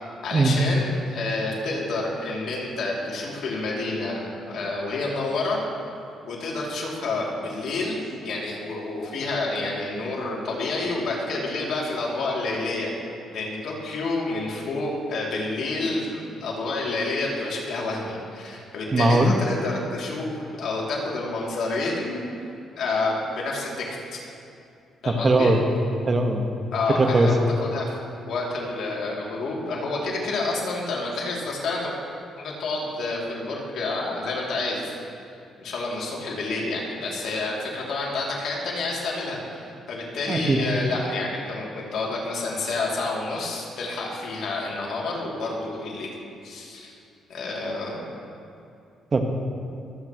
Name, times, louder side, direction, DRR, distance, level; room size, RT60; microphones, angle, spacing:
voice 1, 0.2-5.6 6.2-12.9 13.3-22.2 22.8-23.8 24.1-24.2 25.0-25.5 26.7-31.9 32.4-34.8 35.6-46.1 46.4-46.9 47.3-48.0, left 3 dB, 70° left, -3 dB, 2.7 m, -29 dB
voice 2, 18.9-19.3 25.0-25.6 26.1-26.5 27.0-27.3 40.3-40.6 49.1-49.2, right 2 dB, 35° right, 4 dB, 1.3 m, -19 dB
23.5 x 8.7 x 3.0 m, 2.6 s
cardioid pair, 90°, 0 cm